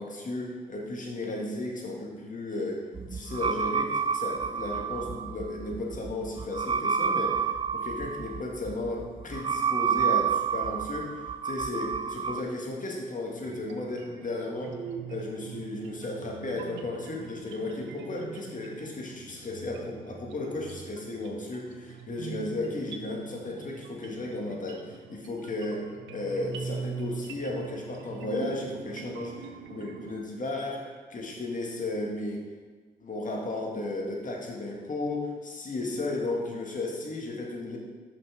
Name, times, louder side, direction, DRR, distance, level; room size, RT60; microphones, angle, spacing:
voice 1, 0.0-14.8 15.1-32.4 33.0-37.8, left 2 dB, 45° left, -1 dB, 1.9 m, -34 dB
sound 1, 2.9-12.4, right 7 dB, 30° right, 0.4 m, -29 dB
sound 2, 13.4-30.2, right 6 dB, 75° right, 0.6 m, -42 dB
6.2 x 5.8 x 4.8 m, 1.4 s
hypercardioid pair, 50°, 19 cm